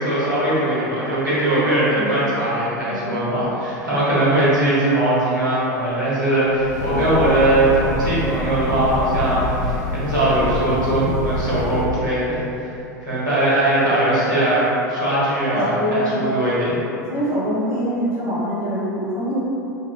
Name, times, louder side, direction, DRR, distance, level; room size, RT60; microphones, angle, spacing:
voice 1, 0.0-12.4 13.0-16.8, right 1 dB, 85° right, -10 dB, 1.2 m, -20 dB
voice 2, 2.8-3.2 15.5-16.1 17.1-19.4, equal, 30° right, -8 dB, 1.3 m, -24 dB
Breathing / Train, 6.5-12.0, left 2 dB, 65° left, 0.5 m, -26 dB
3.7 x 2.8 x 2.3 m, 2.8 s
figure-of-eight pair, 80°, 10 cm